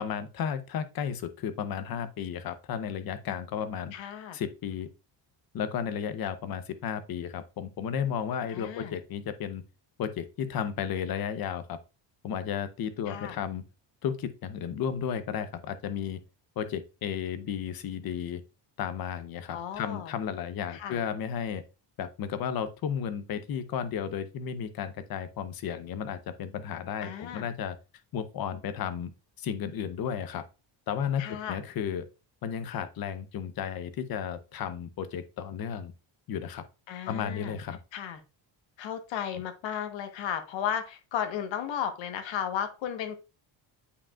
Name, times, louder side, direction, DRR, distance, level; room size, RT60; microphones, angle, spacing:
voice 1, 0.0-3.9 4.3-4.9 5.5-9.6 10.0-11.8 12.2-13.6 14.0-16.2 16.6-18.4 18.8-21.6 22.0-27.8 28.1-29.1 29.4-30.4 30.9-32.1 32.4-35.9 36.3-36.6 37.1-37.8, left 8 dB, 50° left, 0.8 m, -33 dB
voice 2, 3.9-4.4 8.5-9.0 13.1-13.4 19.5-20.1 20.7-21.0 27.0-27.5 31.2-31.6 36.9-37.6 37.9-38.2 38.8-43.2, left 9 dB, 70° left, 1.2 m, -34 dB
8.3 x 5.0 x 2.3 m
cardioid pair, 145°, 47 cm